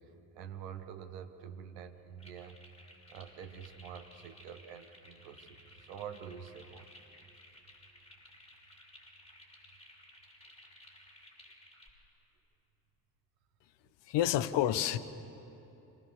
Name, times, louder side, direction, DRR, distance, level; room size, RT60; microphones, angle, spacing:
voice 1, 0.0-2.6 3.1-6.9, right 8 dB, 75° right, 8 dB, 1.3 m, -47 dB
sound 1, 2.2-11.9, left 1 dB, 10° left, 5.5 m, -57 dB
voice 2, 14.1-15.0, left 12 dB, 55° left, 15 dB, 1.0 m, -28 dB
26.5 x 16.0 x 7.0 m, 2.8 s
figure-of-eight pair, 45°, 50 cm